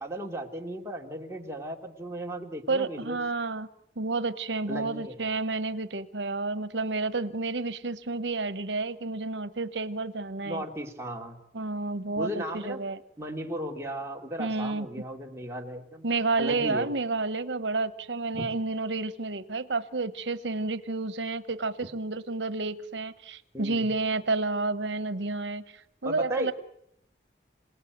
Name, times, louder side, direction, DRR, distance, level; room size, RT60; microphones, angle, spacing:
voice 1, 0.0-3.2 4.7-5.2 10.4-11.4 12.2-12.8 13.2-16.1 16.4-16.9 18.3-18.5 23.5-23.8 26.0-26.5, right 1 dB, 15° right, 1 dB, 2.7 m, -35 dB
voice 2, 2.7-3.7 4.0-10.6 11.5-13.0 14.4-14.9 16.0-26.5, right 3 dB, 90° right, 13 dB, 1.1 m, -30 dB
27.5 x 18.5 x 9.3 m, 0.74 s
head